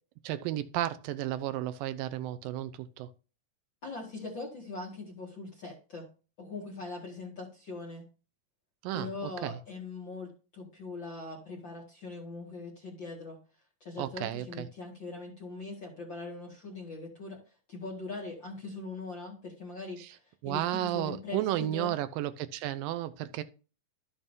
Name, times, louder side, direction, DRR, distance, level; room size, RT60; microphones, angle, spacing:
voice 1, 0.2-3.1 8.8-9.6 14.0-14.7 20.0-20.1 20.4-23.4, right 13 dB, 90° right, 2.4 m, -33 dB
voice 2, 3.8-6.1 6.4-8.0 8.9-13.4 13.8-17.4 17.7-20.0 20.4-22.0, left 3 dB, 40° left, 2.1 m, -41 dB
12.5 x 7.2 x 2.7 m
omnidirectional pair, 3.9 m